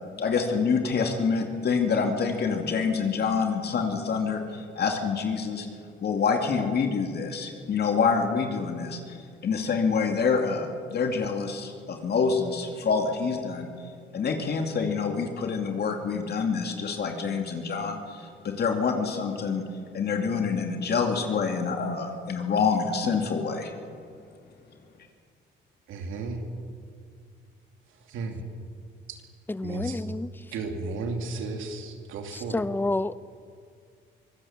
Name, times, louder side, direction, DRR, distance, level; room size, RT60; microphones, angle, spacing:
voice 1, 0.2-5.7 6.0-19.6 19.9-23.7, left 5 dB, 55° left, 3 dB, 2.5 m, -27 dB
voice 2, 25.9-26.4 27.9-28.4 29.1-29.2 29.6-30.0 30.5-32.6, right 3 dB, 90° right, 4 dB, 2.7 m, -34 dB
voice 3, 29.5-30.3 32.3-33.2, left 2 dB, 10° left, 17 dB, 0.6 m, -29 dB
24.0 x 17.0 x 7.4 m, 2.2 s
cardioid pair, 90°, 20 cm